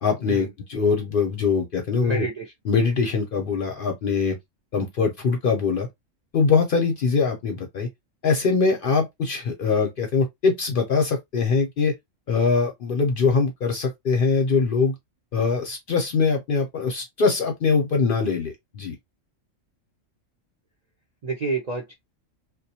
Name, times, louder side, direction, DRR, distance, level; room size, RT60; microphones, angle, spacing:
voice 1, 0.0-2.3 2.7-4.4 4.7-5.9 6.3-7.9 8.2-11.9 12.3-14.9 15.3-19.0, left 5 dB, 55° left, 0.6 m, -22 dB
voice 2, 2.0-2.5 21.2-21.9, right 4 dB, 55° right, 0.4 m, -29 dB
2.2 x 2.2 x 2.7 m
omnidirectional pair, 1.3 m